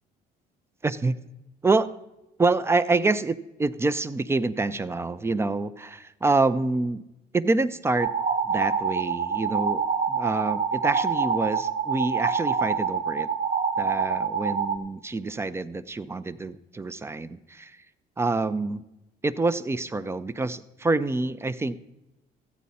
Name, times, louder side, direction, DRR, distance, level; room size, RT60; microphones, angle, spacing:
voice 1, 0.8-1.2 1.6-1.9 2.4-7.0 7.3-8.1 8.4-9.8 10.1-13.3 13.8-17.8 18.2-18.8 19.2-21.8, right 3 dB, 15° right, 13 dB, 0.4 m, -26 dB
sound 1, 8.0-14.8, right 6 dB, 50° right, 0.7 m, -26 dB
14.0 x 8.3 x 4.1 m, 0.93 s
cardioid pair, 110°, 17 cm